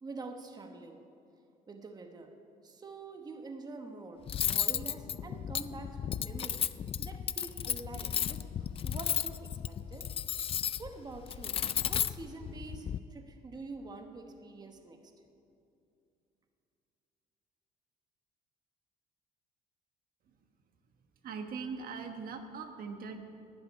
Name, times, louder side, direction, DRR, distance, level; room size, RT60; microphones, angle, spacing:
voice 1, 0.0-1.0 1.7-2.3 2.6-10.2 10.8-15.1, right 3 dB, 25° right, 4 dB, 1.1 m, -46 dB
Cutlery silverware, 4.3-13.0, left 9 dB, 35° left, 0.3 m, -34 dB
voice 2, 21.2-23.2, right 5 dB, 60° right, 5 dB, 1.2 m, -40 dB
11.0 x 7.8 x 9.7 m, 2.6 s
cardioid pair, 110°, 17 cm